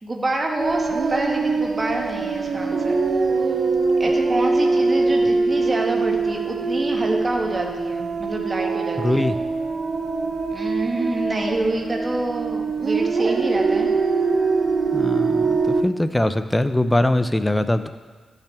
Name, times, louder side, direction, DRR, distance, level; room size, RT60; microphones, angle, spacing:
voice 1, 0.0-3.0 3.5-3.6 4.0-9.3 10.5-13.9, right 2 dB, 35° right, 1 dB, 1.6 m, -27 dB
sound 1, 0.6-15.8, right 4 dB, 60° right, 0.6 m, -23 dB
voice 2, 9.0-9.3 14.9-17.9, left 1 dB, 15° left, 11 dB, 0.5 m, -22 dB
13.0 x 5.8 x 3.5 m, 1.4 s
cardioid pair, 55°, 0 cm